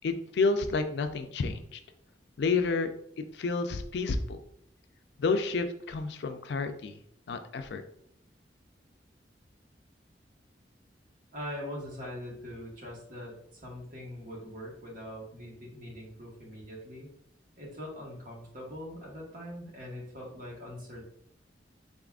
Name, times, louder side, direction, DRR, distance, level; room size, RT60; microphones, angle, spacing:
voice 1, 0.0-1.8 2.4-2.9 3.2-4.4 5.2-7.0 7.3-7.8, left 4 dB, 65° left, 8 dB, 0.4 m, -30 dB
voice 2, 11.3-17.1 17.6-21.1, equal, 50° right, -3 dB, 1.3 m, -42 dB
4.0 x 3.6 x 2.4 m, 0.69 s
head